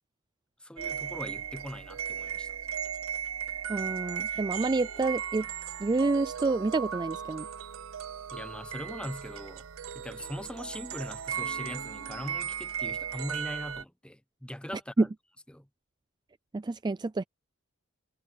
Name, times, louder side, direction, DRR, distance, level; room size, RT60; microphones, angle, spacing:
voice 1, 0.6-2.6 8.3-9.6 9.9-15.1 15.5-15.7, equal, 5° left, 0.9 m, -41 dB
sound 1, 0.8-13.8, right 8 dB, 80° right, 0.7 m, -36 dB
voice 2, 3.7-5.5 5.8-7.5 15.0-15.1 16.5-17.2, right 3 dB, 20° right, 0.3 m, -28 dB
head